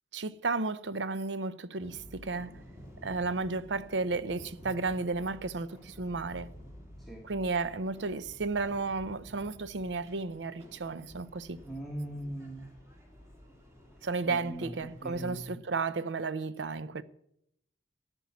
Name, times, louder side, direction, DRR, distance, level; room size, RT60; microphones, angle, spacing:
voice 1, 0.1-2.6 3.0-6.5 7.2-11.6 14.0-17.0, right 3 dB, 85° right, 0.6 m, -33 dB
sound 1, 1.8-15.5, equal, 15° right, 2.3 m, -52 dB
voice 2, 11.6-12.7 14.3-14.7 15.0-15.4, right 1 dB, ahead, 1.3 m, -40 dB
13.5 x 5.5 x 9.4 m
head